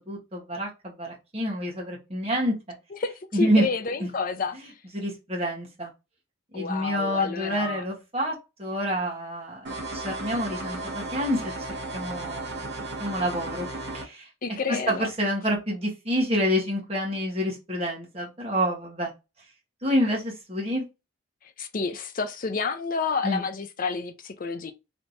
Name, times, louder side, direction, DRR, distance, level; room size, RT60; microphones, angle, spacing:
voice 1, 0.1-2.5 3.3-3.6 4.0-4.1 4.9-5.9 6.5-11.4 11.9-12.6 13.0-13.7 13.9-14.3 14.7-19.1 19.8-20.8 23.2-23.4, equal, 30° right, 1.3 m, -28 dB
voice 2, 2.9-4.6 6.5-7.8 14.4-15.1 21.6-24.7, left 4 dB, 40° left, 0.5 m, -29 dB
sound 1, 9.7-14.1, right 2 dB, 50° right, 1.3 m, -34 dB
3.3 x 2.9 x 2.7 m
head